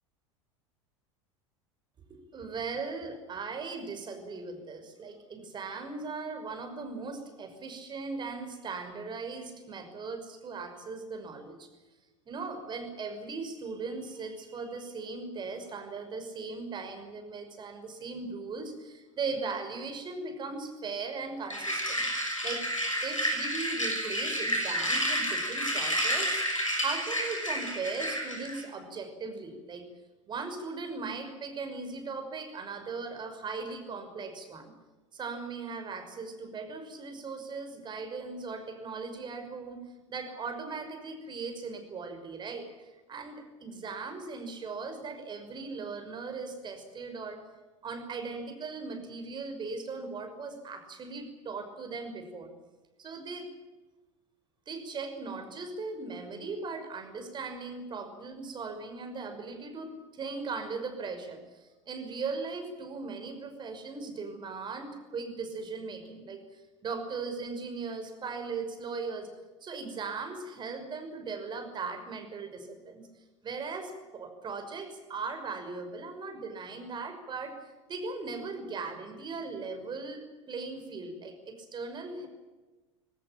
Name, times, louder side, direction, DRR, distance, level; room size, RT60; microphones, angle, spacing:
voice 1, 2.1-11.7 12.3-22.1 22.4-22.7 23.0-26.4 26.8-29.9 30.3-34.7 35.1-47.4 47.8-52.5 53.0-53.5 54.7-69.3 69.6-73.0 73.4-77.6 77.9-82.3, right 4 dB, 30° right, 7 dB, 5.8 m, -38 dB
sound 1, 21.5-28.6, equal, 90° left, 6.1 m, -30 dB
21.5 x 19.0 x 9.0 m, 1.2 s
figure-of-eight pair, 75°, 16 cm